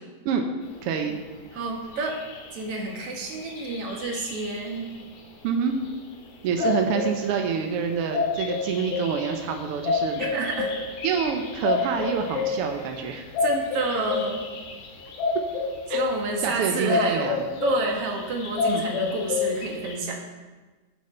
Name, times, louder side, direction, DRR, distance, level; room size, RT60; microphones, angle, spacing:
voice 1, 0.8-1.2 5.4-5.8 6.4-10.3 11.0-13.2 15.9-16.0 16.4-17.4 18.7-18.8, right 6 dB, 75° right, 4 dB, 1.3 m, -27 dB
voice 2, 1.5-2.2 2.5-4.9 6.6-6.7 10.2-10.7 13.4-14.5 15.9-17.4 17.6-20.2, right 3 dB, 55° right, 1 dB, 2.2 m, -29 dB
sound 1, 1.6-1.7 1.9-5.0 6.5-20.0, left 4 dB, 85° left, 2.9 m, -29 dB
12.0 x 7.7 x 4.3 m, 1.3 s
omnidirectional pair, 3.5 m